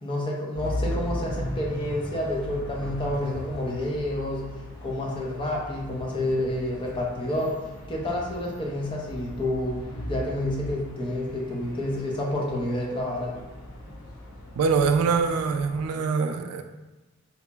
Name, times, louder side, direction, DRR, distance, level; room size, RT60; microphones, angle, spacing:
voice 1, 0.0-4.5 4.8-7.6 7.9-13.4, left 1 dB, 25° left, -2 dB, 0.6 m, -29 dB
sound 1, 0.5-15.9, left 1 dB, 85° left, 0.7 m, -37 dB
voice 2, 14.6-16.6, right 5 dB, 85° right, 7 dB, 0.3 m, -24 dB
3.9 x 2.9 x 2.2 m, 1.1 s
head